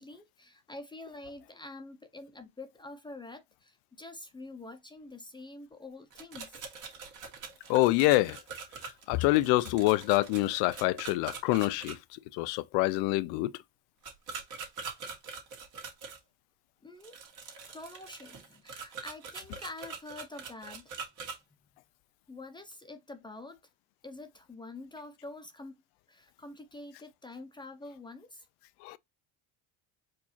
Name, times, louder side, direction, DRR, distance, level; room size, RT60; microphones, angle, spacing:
voice 1, 0.0-6.6 16.8-17.2 17.7-20.9 22.3-23.6 24.0-25.8 26.1-28.5, left 2 dB, 10° left, 0.7 m, -46 dB
sound 1, 6.1-11.9 14.0-16.2 17.0-21.4, right 5 dB, 45° right, 1.9 m, -43 dB
voice 2, 7.7-8.4 9.1-13.5 28.8-29.0, left 19 dB, 70° left, 0.6 m, -26 dB
4.7 x 2.7 x 4.2 m
supercardioid pair, 110°, 41 cm